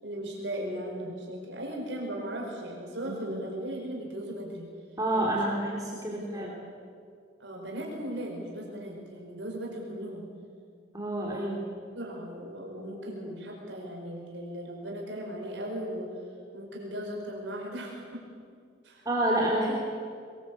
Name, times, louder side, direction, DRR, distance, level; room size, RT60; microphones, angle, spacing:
voice 1, 0.0-4.7 5.1-6.6 7.4-10.3 11.2-11.6 11.9-16.1 16.5-18.2 18.8-19.1, right 1 dB, 70° right, -1 dB, 5.0 m, -38 dB
voice 2, 3.0-3.4 5.0-6.5 10.9-11.6 19.0-19.8, right 1 dB, 20° right, -3 dB, 3.3 m, -28 dB
23.5 x 21.0 x 8.5 m, 2.2 s
head